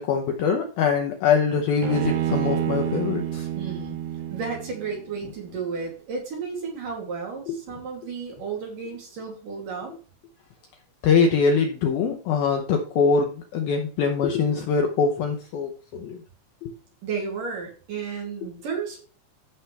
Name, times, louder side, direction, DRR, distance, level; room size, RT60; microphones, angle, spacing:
voice 1, 0.0-3.5 7.5-7.6 11.0-16.2 16.6-16.7, left 5 dB, 85° left, 3 dB, 2.1 m, -23 dB
Bowed string instrument, 1.8-5.1, right 11 dB, 80° right, 3.2 m, -28 dB
voice 2, 3.5-4.0 4.3-9.9 17.0-19.0, right 5 dB, 50° right, 0 dB, 3.8 m, -33 dB
15.0 x 5.7 x 3.3 m, 0.37 s
omnidirectional pair, 5.7 m